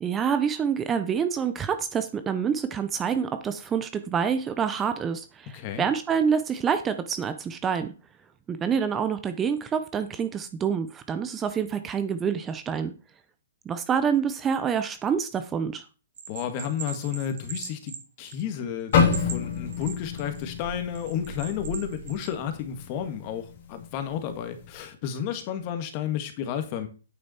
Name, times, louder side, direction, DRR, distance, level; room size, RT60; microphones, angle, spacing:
voice 1, 0.0-7.9 8.5-12.9 13.7-15.9, right 7 dB, 15° right, 10 dB, 0.7 m, -27 dB
voice 2, 5.5-5.8 16.3-26.9, left 9 dB, 35° left, 7 dB, 1.8 m, -32 dB
Bell, 16.2-18.6 18.9-20.4 20.9-22.3, right 7 dB, 65° right, 2.5 m, -39 dB
sound 1, 18.9-23.0 23.3-23.6 24.2-24.6, left 5 dB, 55° left, 2.9 m, -27 dB
8.8 x 6.6 x 4.4 m, 0.35 s
hypercardioid pair, 145°, 0 cm